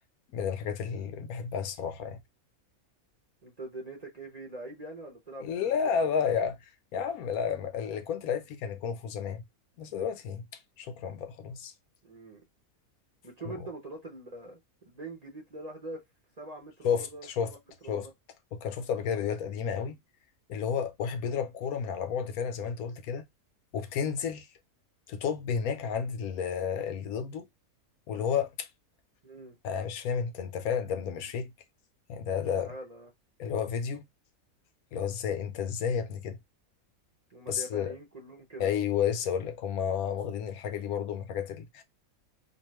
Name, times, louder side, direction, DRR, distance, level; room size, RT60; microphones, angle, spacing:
voice 1, 0.3-2.2 5.4-6.6 6.9-9.4 9.8-10.4 10.8-11.7 13.4-13.6 16.8-17.5 17.9-18.1 18.5-20.0 20.5-23.3 23.7-24.5 25.1-27.5 28.1-28.7 29.6-31.5 32.1-32.7 33.4-34.1 34.9-36.4 37.5-37.9 38.6-41.8, left 7 dB, 80° left, 1.0 m, -31 dB
voice 2, 3.4-6.2 12.0-12.4 13.2-14.6 14.8-16.0 16.4-17.6 17.8-18.1 29.2-29.6 32.6-33.1 37.3-38.7, right 2 dB, 35° right, 0.7 m, -43 dB
2.7 x 2.4 x 3.1 m
omnidirectional pair, 1.5 m